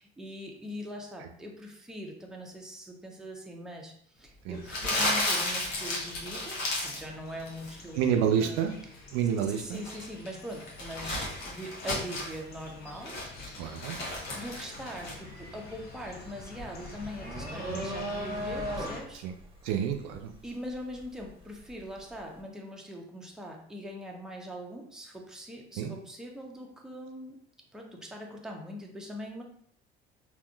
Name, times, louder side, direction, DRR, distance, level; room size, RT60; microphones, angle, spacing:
voice 1, 0.0-8.6 9.6-13.2 13.5-14.0 14.3-19.3 20.4-27.4 27.7-29.4, equal, ahead, 0 dB, 0.6 m, -42 dB
sound 1, 4.5-19.0, left 3 dB, 30° left, 0.8 m, -47 dB
Crumpling crinkling, 4.7-7.1 7.4-7.8 9.5-12.4 12.8-15.1, left 1 dB, 65° left, 1.1 m, -33 dB
voice 2, 7.9-8.7 9.1-9.8 13.6-14.0 17.7-17.9 19.2-19.3 19.6-20.3 25.8-26.0, right 8 dB, 65° right, 5 dB, 0.5 m, -29 dB
sound 2, 14.2-14.4 14.8-21.8, equal, 15° right, 0.9 m, -38 dB
3.5 x 2.4 x 2.2 m, 0.63 s
hypercardioid pair, 60°, 31 cm